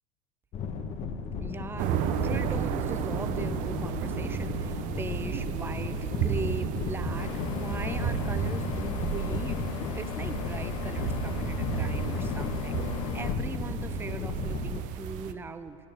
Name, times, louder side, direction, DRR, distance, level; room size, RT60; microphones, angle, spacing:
sound 1, 0.5-14.8, left 5 dB, 40° left, 1.1 m, -35 dB
voice 1, 1.4-15.8, right 4 dB, 15° right, 11 dB, 0.6 m, -39 dB
sound 2, 1.8-15.3, right 10 dB, 50° right, 0.7 m, -33 dB
sound 3, 7.2-13.4, left 15 dB, 80° left, 0.5 m, -39 dB
12.0 x 8.6 x 7.0 m, 2.5 s
supercardioid pair, 115°, 17 cm